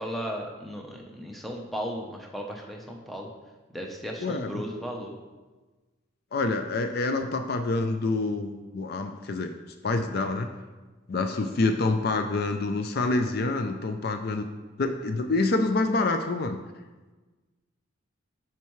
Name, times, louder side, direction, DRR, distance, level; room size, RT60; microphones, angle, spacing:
voice 1, 0.0-3.3 3.7-5.2, equal, ahead, 0 dB, 0.7 m, -35 dB
voice 2, 4.2-4.6 6.3-9.5 9.8-10.5 11.1-14.5 14.8-16.6, left 3 dB, 50° left, 7 dB, 0.4 m, -27 dB
12.5 x 4.6 x 3.1 m, 1.2 s
head